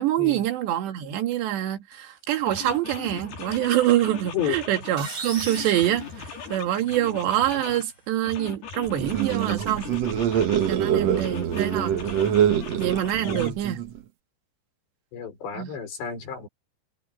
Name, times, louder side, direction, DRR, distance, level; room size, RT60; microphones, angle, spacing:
voice 1, 0.0-9.9 10.7-12.0 12.8-13.8 15.6-15.7, right 13 dB, 85° right, 4.2 m, -25 dB
sound 1, 1.9-2.1 2.5-5.0 5.3-7.9 8.2-10.8 11.1-13.5, left 5 dB, 65° left, 6.7 m, -39 dB
sound 2, 5.0-6.9, right 3 dB, 25° right, 4.7 m, -37 dB
sound 3, 8.9-14.0, right 9 dB, 65° right, 1.6 m, -25 dB
voice 2, 15.1-16.5, left 9 dB, 85° left, 7.7 m, -31 dB
omnidirectional pair, 4.9 m